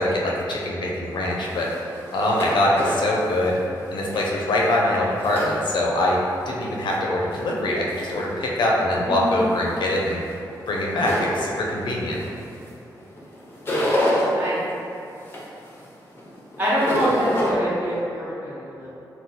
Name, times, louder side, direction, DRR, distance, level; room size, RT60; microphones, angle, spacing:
voice 1, 0.0-1.7 2.1-3.6 3.9-6.2 6.5-10.2 10.7-12.2, left 1 dB, 80° left, -3 dB, 0.5 m, -23 dB
sound 1, 1.1-6.1 6.5-7.4 7.9-8.4 8.9-12.7 13.0-14.3 14.8-17.5, left 1 dB, 30° left, 0.7 m, -28 dB
voice 2, 16.6-18.9, equal, 25° right, -10 dB, 1.2 m, -25 dB
2.8 x 2.2 x 3.7 m, 2.7 s
cardioid pair, 85°, 8 cm